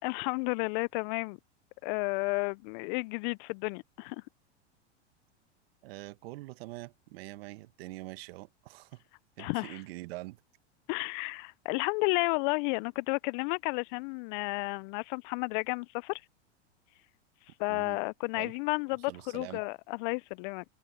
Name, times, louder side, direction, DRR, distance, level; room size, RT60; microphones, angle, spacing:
voice 1, 0.0-1.4 1.8-4.2 9.4-9.8 10.9-16.2 17.6-20.6, left 31 dB, 45° left, 0.5 m, -32 dB
voice 2, 5.8-9.0 9.4-10.4 17.7-18.0 18.3-18.6 19.1-19.6, right 20 dB, 60° right, 1.7 m, -44 dB
hypercardioid pair, 100°, 33 cm